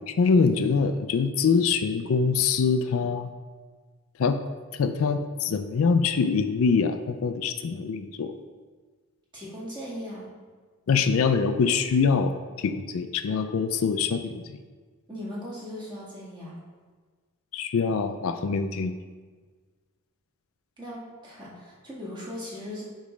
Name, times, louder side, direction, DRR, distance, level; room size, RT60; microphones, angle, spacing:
voice 1, 0.1-3.3 4.2-4.4 4.8-8.3 10.9-14.6 17.5-19.0, left 5 dB, 65° left, 9 dB, 0.4 m, -24 dB
voice 2, 9.3-10.3 15.1-16.6 20.8-22.8, equal, 20° right, -7 dB, 1.8 m, -38 dB
8.4 x 3.2 x 4.9 m, 1.5 s
head